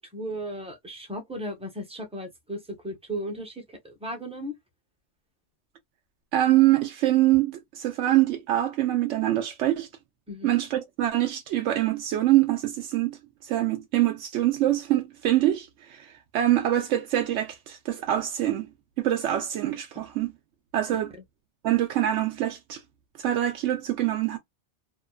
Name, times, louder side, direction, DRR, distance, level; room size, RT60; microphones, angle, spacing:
voice 1, 0.0-4.5 10.3-10.5, right 1 dB, 5° right, 0.7 m, -36 dB
voice 2, 6.3-9.9 10.4-18.7 19.0-20.3 20.7-21.1 21.6-22.8 23.2-24.4, right 14 dB, 85° right, 0.9 m, -24 dB
2.9 x 2.2 x 2.2 m
omnidirectional pair, 1.2 m